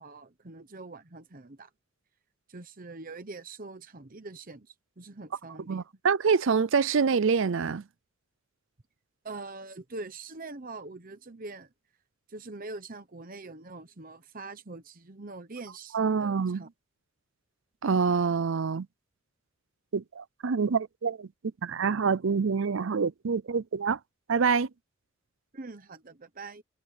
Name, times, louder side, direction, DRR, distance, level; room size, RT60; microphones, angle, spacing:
voice 1, 0.0-1.7 2.5-5.8 9.2-11.7 12.3-16.7 25.5-26.6, right 3 dB, 40° right, 1.0 m, -43 dB
voice 2, 5.7-7.8 15.9-16.6 17.8-18.9 19.9-21.3 21.6-24.0 24.3-24.7, right 5 dB, 60° right, 0.5 m, -26 dB
head